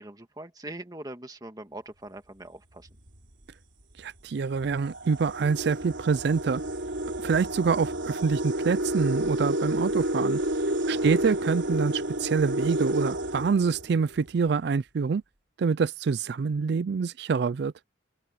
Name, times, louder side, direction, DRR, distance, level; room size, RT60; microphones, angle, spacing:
voice 1, 0.0-2.9 10.9-11.2, right 1 dB, 20° right, 1.7 m, -42 dB
sound 1, 2.9-3.1 4.0-4.1 4.5-14.3, right 1 dB, 75° right, 3.3 m, -30 dB
voice 2, 4.0-6.6 7.2-10.4 10.9-15.2 15.6-17.7, right 5 dB, 60° right, 0.4 m, -26 dB
open air
head